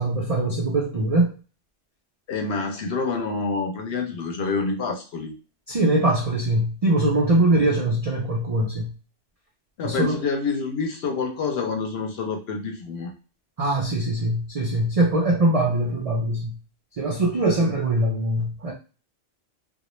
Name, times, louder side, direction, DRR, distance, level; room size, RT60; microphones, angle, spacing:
voice 1, 0.0-1.3 5.7-8.9 9.8-10.2 13.6-16.6 17.0-18.7, right 1 dB, 65° right, -1 dB, 0.3 m, -22 dB
voice 2, 2.3-5.4 7.5-7.7 9.8-13.1, left 4 dB, 65° left, 3 dB, 0.8 m, -27 dB
2.2 x 2.0 x 3.0 m, 0.35 s
omnidirectional pair, 1.3 m